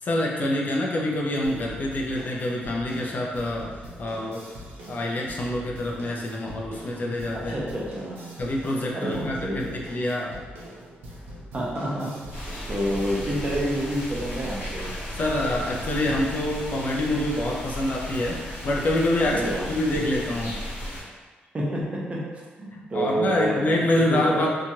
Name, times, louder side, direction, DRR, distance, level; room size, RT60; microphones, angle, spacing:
voice 1, 0.0-3.7 4.0-4.4 4.9-7.6 8.4-10.3 15.2-18.4 18.6-19.4 19.7-20.6 22.9-24.6, left 1 dB, 50° left, -2 dB, 0.5 m, -26 dB
sound 1, 1.4-16.8, equal, 80° right, 0.7 m, -43 dB
voice 2, 7.3-8.3 8.9-9.8 11.5-12.1 12.7-14.9 19.2-19.6 21.5-24.4, right 1 dB, 35° right, -4 dB, 0.7 m, -29 dB
sound 2, 12.3-21.0, equal, 80° left, 1.2 m, -35 dB
2.9 x 2.3 x 2.7 m, 1.4 s
cardioid pair, 90°, 4 cm